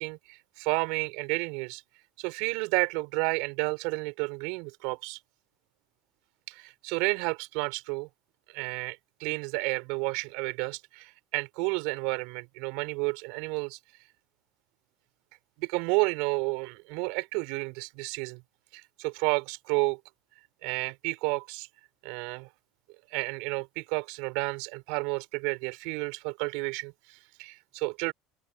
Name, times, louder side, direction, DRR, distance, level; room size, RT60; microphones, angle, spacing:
voice 1, 0.0-1.8 2.2-5.2 6.5-8.1 8.5-13.8 15.6-18.4 18.7-20.0 20.6-21.7 22.0-22.5 23.1-28.1, right 31 dB, 70° right, 5.4 m, -31 dB
open air
hypercardioid pair, 80°, 0 cm